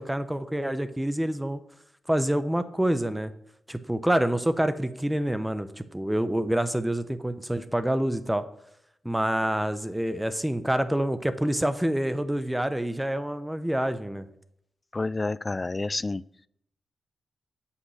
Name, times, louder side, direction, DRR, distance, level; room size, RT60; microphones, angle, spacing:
voice 1, 0.0-1.6 2.1-3.3 3.7-8.4 9.0-14.3, right 1 dB, 10° right, 11 dB, 0.7 m, -27 dB
voice 2, 14.9-16.2, left 3 dB, 30° left, 20 dB, 0.3 m, -29 dB
8.3 x 5.4 x 6.3 m, 0.73 s
cardioid pair, 70°, 0 cm